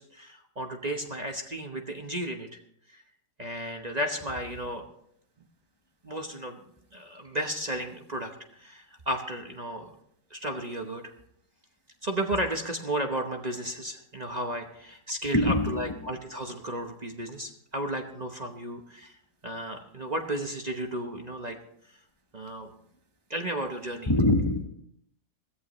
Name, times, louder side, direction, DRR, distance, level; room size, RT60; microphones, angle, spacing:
voice 1, 0.0-2.6 2.9-3.0 3.4-4.8 6.0-6.6 6.9-9.9 10.3-11.1 12.0-19.2 19.4-21.6 22.3-22.7 23.3-24.1, right 1 dB, 30° right, 3 dB, 1.0 m, -33 dB
voice 2, 15.3-16.1 24.1-24.6, left 1 dB, 20° left, 5 dB, 0.8 m, -24 dB
21.0 x 14.0 x 3.1 m, 0.71 s
omnidirectional pair, 1.7 m